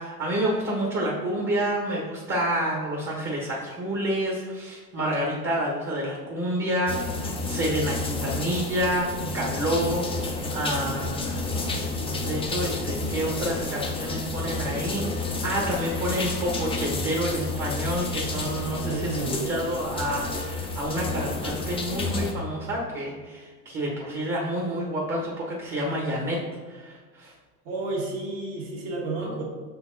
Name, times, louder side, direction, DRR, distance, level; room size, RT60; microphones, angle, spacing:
voice 1, 0.0-11.4 11.9-26.4 26.7-27.3 29.2-29.4, right 1 dB, 25° right, -2 dB, 1.3 m, -29 dB
sound 1, 6.9-22.3, left 3 dB, 10° left, 0.6 m, -30 dB
voice 2, 18.9-19.6 27.7-29.4, right 3 dB, 50° right, -4 dB, 1.9 m, -31 dB
6.0 x 4.5 x 3.9 m, 1.5 s
supercardioid pair, 115°, 47 cm